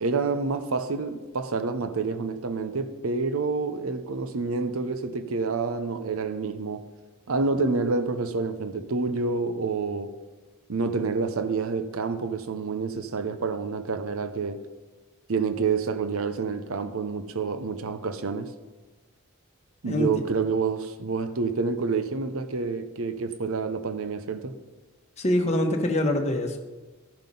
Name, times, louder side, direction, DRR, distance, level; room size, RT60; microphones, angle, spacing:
voice 1, 0.0-6.8 7.3-10.1 10.7-14.6 15.3-18.5 19.8-24.6, right 4 dB, 70° right, 0.7 m, -28 dB
voice 2, 25.2-26.6, left 1 dB, 30° left, 1.1 m, -24 dB
13.5 x 5.7 x 5.4 m
head